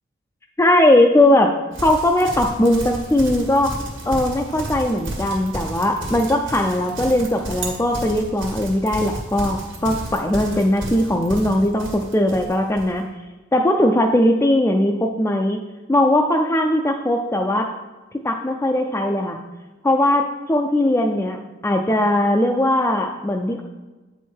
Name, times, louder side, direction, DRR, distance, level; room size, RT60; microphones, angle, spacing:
voice 1, 0.6-1.5 1.8-3.7 4.1-13.0 13.5-15.6 15.9-17.7 18.2-19.4 19.8-21.4 21.6-23.6, left 1 dB, 15° left, 2 dB, 0.4 m, -19 dB
Livestock farm animals working animals, 1.7-12.9, right 1 dB, 65° right, 1.6 m, -32 dB
8.3 x 4.6 x 4.5 m, 1.2 s
head